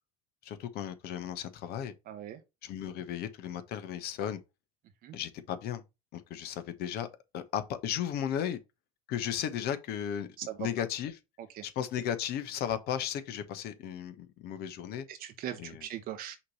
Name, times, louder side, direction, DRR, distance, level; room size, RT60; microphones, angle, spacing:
voice 1, 0.4-1.9 2.6-4.4 5.1-5.8 6.1-7.1 7.3-8.6 9.1-10.3 10.6-11.1 11.6-15.1 15.6-15.8, left 9 dB, 60° left, 1.2 m, -35 dB
voice 2, 2.1-2.4 5.0-5.2 8.4-8.5 10.4-10.7 11.4-11.6 15.1-16.4, right 11 dB, 55° right, 1.0 m, -40 dB
5.8 x 3.2 x 5.4 m
hypercardioid pair, 80°, 18 cm